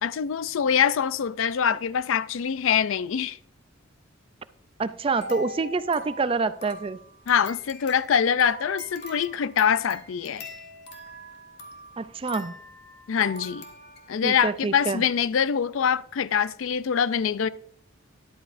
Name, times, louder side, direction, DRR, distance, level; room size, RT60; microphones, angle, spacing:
voice 1, 0.0-3.4 7.3-10.4 13.1-13.6 14.1-17.5, left 7 dB, 70° left, 0.4 m, -24 dB
voice 2, 4.8-7.0 12.0-12.5 14.2-15.0, right 4 dB, 25° right, 0.3 m, -27 dB
sound 1, 5.2-14.3 14.8-14.9 15.2-15.3, left 1 dB, 55° left, 1.7 m, -43 dB
13.0 x 11.0 x 2.5 m
head